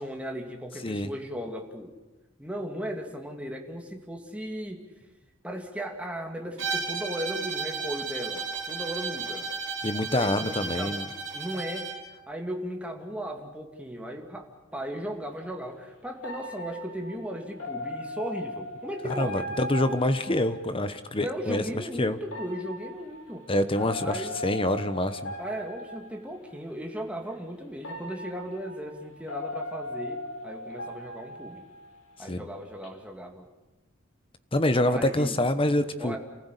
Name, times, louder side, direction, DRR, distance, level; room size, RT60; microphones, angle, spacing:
voice 1, 0.0-1.9 2.4-4.8 5.4-9.5 10.1-11.0 11.3-14.5 14.7-19.4 21.2-23.5 24.0-24.4 25.4-31.6 32.2-33.5 34.9-35.4 36.0-36.2, equal, 5° right, 2 dB, 2.4 m, -36 dB
Bowed string instrument, 6.6-12.1, right 5 dB, 70° right, 3.5 m, -34 dB
voice 2, 9.8-11.1 19.0-22.2 23.5-25.3 32.3-32.5 34.5-36.2, left 1 dB, 25° left, 12 dB, 1.1 m, -26 dB
sound 1, 14.7-14.9 16.2-21.0 22.2-26.5 27.3-27.4 27.8-32.2 32.6-32.9, left 1 dB, 80° left, 4.1 m, -38 dB
28.0 x 15.0 x 8.3 m, 1.1 s
head